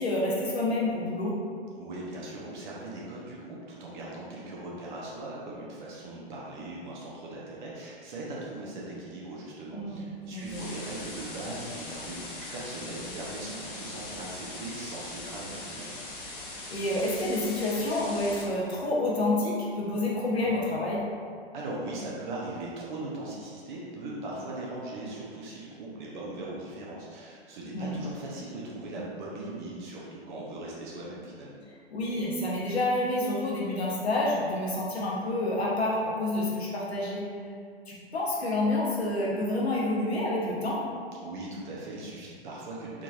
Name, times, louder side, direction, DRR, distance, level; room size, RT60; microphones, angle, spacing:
voice 1, 0.0-1.4 9.7-10.7 16.7-21.1 27.7-28.0 31.9-37.3 37.9-40.9, left 1 dB, 90° left, -5 dB, 0.7 m, -28 dB
voice 2, 1.8-16.0 21.5-31.6 41.2-43.0, right 2 dB, 50° right, -4 dB, 0.7 m, -39 dB
sound 1, 10.3-18.4, left 2 dB, 55° left, 0.9 m, -41 dB
3.6 x 3.1 x 2.3 m, 2.2 s
figure-of-eight pair, 105°, 31 cm